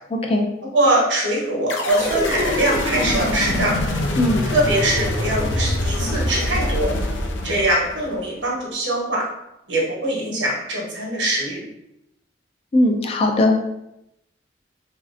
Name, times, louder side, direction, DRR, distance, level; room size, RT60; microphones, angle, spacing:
voice 1, 0.7-3.7 4.5-6.9 7.4-9.2 9.7-11.6, right 1 dB, 85° right, -3 dB, 1.0 m, -22 dB
sound 1, 1.7-8.2, left 1 dB, 90° left, 0.5 m, -24 dB
voice 2, 12.7-13.7, left 1 dB, 35° left, 3 dB, 0.3 m, -18 dB
3.1 x 2.7 x 2.4 m, 0.84 s
head